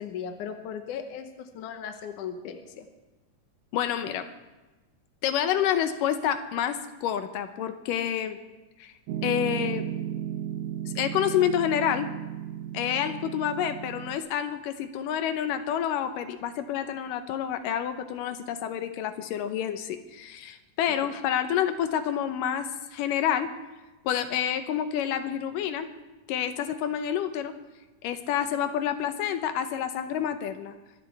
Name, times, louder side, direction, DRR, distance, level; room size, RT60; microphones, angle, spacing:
voice 1, 0.0-2.9, left 7 dB, 75° left, 6 dB, 2.4 m, -37 dB
voice 2, 3.7-4.3 5.2-8.4 8.8-8.9 9.2-9.8 10.9-12.1 12.7-23.5 24.0-25.9 26.3-27.5 28.0-30.7, left 9 dB, 90° left, 9 dB, 2.5 m, -28 dB
Piano, 9.1-14.2, right 10 dB, 75° right, 2.0 m, -34 dB
25.0 x 12.0 x 3.4 m, 1.1 s
omnidirectional pair, 3.8 m